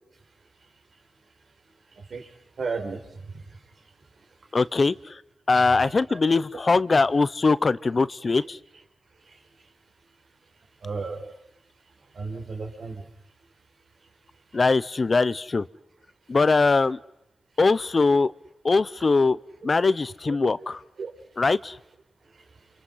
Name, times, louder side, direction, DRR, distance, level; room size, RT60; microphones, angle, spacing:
voice 1, 1.9-4.2 5.5-6.2 9.2-9.7 10.8-11.3 12.1-13.1 20.3-20.4 21.0-21.4 22.2-22.5, right 4 dB, 75° right, 3 dB, 5.0 m, -36 dB
voice 2, 4.5-5.2 5.5-8.6 14.5-15.7 16.3-17.0 17.6-18.3 18.6-19.4 19.6-20.8 21.4-21.8, left 3 dB, 50° left, 17 dB, 0.8 m, -21 dB
28.0 x 26.5 x 5.7 m, 0.83 s
cardioid pair, 50°, 0 cm